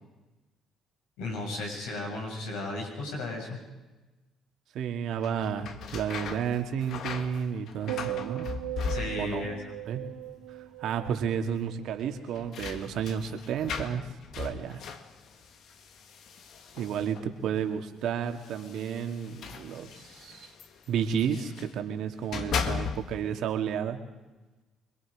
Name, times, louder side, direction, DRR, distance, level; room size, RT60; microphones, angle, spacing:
voice 1, 1.2-3.6 8.9-9.5, left 2 dB, 85° left, 0 dB, 6.9 m, -34 dB
voice 2, 4.7-8.5 9.2-9.5 9.9-10.0 10.8-14.0 14.4-14.8 16.7-20.5 20.9-24.0, right 8 dB, 70° right, 5 dB, 2.4 m, -31 dB
sound 1, 5.1-9.5 9.8-10.5 10.8-10.9 12.0-17.4 18.3-21.8 22.1-23.3, left 6 dB, 65° left, 1.9 m, -38 dB
sound 2, 7.9-12.3 12.6-13.0, right 15 dB, 85° right, 3.3 m, -39 dB
27.0 x 21.5 x 5.1 m, 1.1 s
supercardioid pair, 65°, 0 cm